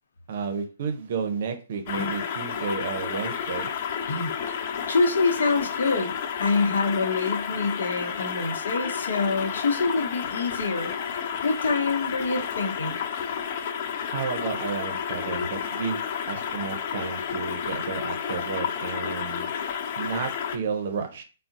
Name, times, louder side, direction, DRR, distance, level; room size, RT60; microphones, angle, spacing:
voice 1, 0.3-3.7 14.1-16.0 16.3-19.5 20.0-21.2, right 6 dB, 55° right, 6 dB, 0.7 m, -32 dB
sound 1, 1.9-20.6, left 7 dB, 45° left, 0.4 m, -31 dB
voice 2, 4.9-6.1 6.4-10.9 11.4-13.0, left 3 dB, 75° left, 6 dB, 0.7 m, -26 dB
3.7 x 2.0 x 2.6 m, 0.35 s
hypercardioid pair, 145°, 0 cm